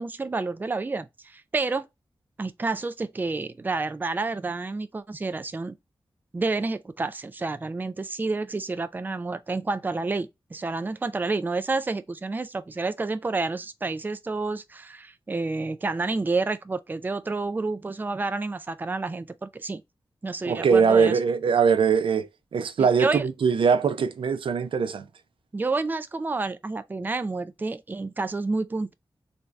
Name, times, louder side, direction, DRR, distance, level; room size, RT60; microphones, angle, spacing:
voice 1, 0.0-1.9 2.4-5.8 6.3-19.8 20.2-21.2 22.8-23.2 25.5-28.9, right 3 dB, 20° right, 0.4 m, -29 dB
voice 2, 20.4-25.1, right 6 dB, 90° right, 0.5 m, -22 dB
3.5 x 2.7 x 3.1 m
wide cardioid pair, 125°, 9 cm